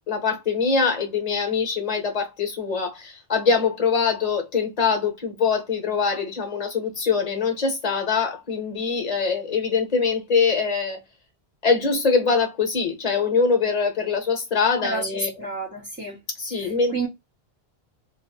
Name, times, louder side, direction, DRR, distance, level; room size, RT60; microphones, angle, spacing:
voice 1, 0.1-11.0 11.6-15.3 16.4-16.9, left 5 dB, 40° left, 0.9 m, -23 dB
voice 2, 15.4-16.2 16.5-17.1, right 3 dB, 15° right, 0.5 m, -30 dB
2.3 x 2.0 x 2.8 m
omnidirectional pair, 1.1 m